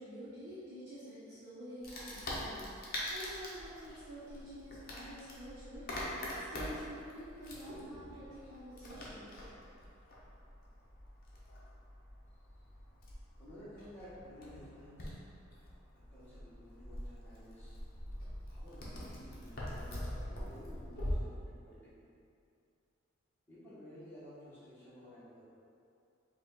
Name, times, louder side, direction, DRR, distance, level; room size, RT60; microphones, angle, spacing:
voice 1, 0.0-9.5, equal, 55° right, -12 dB, 0.9 m, -48 dB
Wood, 1.8-21.1, left 1 dB, 45° left, 0.8 m, -44 dB
voice 2, 12.4-12.7 13.4-15.2 15.9-22.0 23.5-25.4, equal, 10° left, -12 dB, 1.1 m, -54 dB
4.9 x 2.4 x 3.8 m, 2.5 s
head